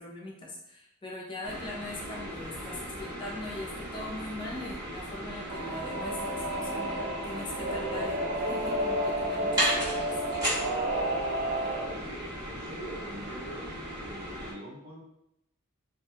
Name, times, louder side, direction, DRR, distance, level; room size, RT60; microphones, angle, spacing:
voice 1, 0.0-10.1, left 1 dB, 20° left, -3 dB, 0.4 m, -41 dB
sound 1, 1.4-14.5, equal, 20° right, 0.9 m, -36 dB
Singing / Musical instrument, 5.5-11.8, right 1 dB, 45° right, 0.3 m, -31 dB
voice 2, 11.7-13.7 14.0-15.0, equal, 70° right, -5 dB, 1.0 m, -44 dB
2.5 x 2.2 x 2.7 m, 0.82 s
head